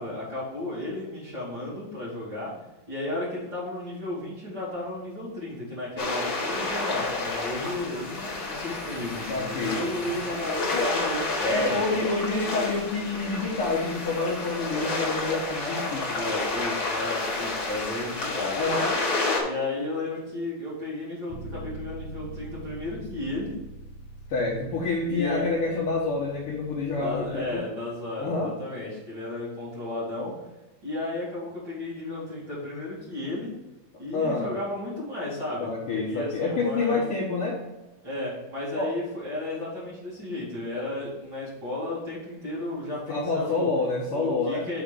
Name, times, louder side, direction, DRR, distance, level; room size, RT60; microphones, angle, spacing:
voice 1, 0.0-2.5 2.9-11.8 16.1-18.6 19.4-23.6 25.1-25.5 26.9-30.3 30.8-33.5 34.0-37.0 38.0-43.7 44.1-44.8, left 2 dB, 30° right, -7 dB, 2.7 m, -33 dB
sound 1, 6.0-19.4, left 3 dB, 45° left, 1.2 m, -30 dB
voice 2, 9.3-9.9 10.7-11.0 11.4-16.2 18.6-19.0 24.3-27.7 28.2-28.6 34.1-34.5 35.6-37.6 38.7-38.9 40.7-40.9 43.1-44.7, left 3 dB, 90° left, -4 dB, 1.2 m, -28 dB
Bass guitar, 21.3-27.6, right 1 dB, 90° right, 2.7 m, -43 dB
6.4 x 5.0 x 5.2 m, 1.0 s
omnidirectional pair, 4.1 m